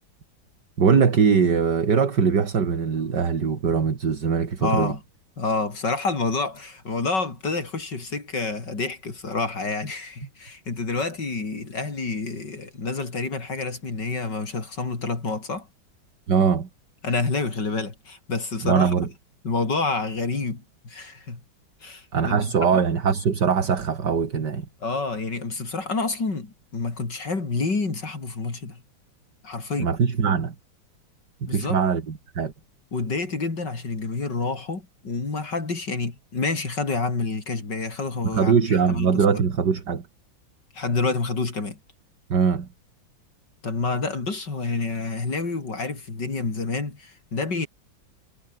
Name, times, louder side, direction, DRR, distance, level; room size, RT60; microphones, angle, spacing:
voice 1, 0.8-4.9 16.3-16.7 18.6-19.1 22.1-24.7 29.8-30.5 31.4-32.5 38.3-40.1 42.3-42.7, right 6 dB, 60° right, 2.8 m, -21 dB
voice 2, 4.6-5.0 5.4-15.7 17.0-19.1 19.4-21.4 21.8-22.5 24.8-28.8 29.4-29.9 31.5-31.8 32.9-38.6 38.9-39.2 40.7-41.8 43.6-47.7, left 3 dB, 60° left, 4.6 m, -28 dB
omnidirectional pair, 2.1 m